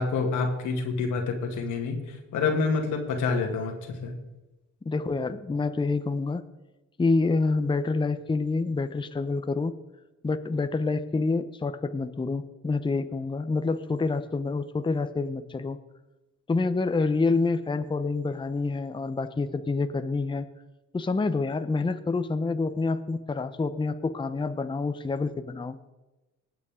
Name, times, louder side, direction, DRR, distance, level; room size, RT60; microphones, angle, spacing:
voice 1, 0.0-4.1, left 4 dB, 85° left, 3 dB, 2.2 m, -27 dB
voice 2, 4.9-6.4 7.0-9.7 10.2-15.8 16.5-20.5 20.9-25.8, left 3 dB, 15° left, 11 dB, 0.7 m, -27 dB
19.0 x 8.3 x 3.6 m, 1.0 s
cardioid pair, 90°, 30 cm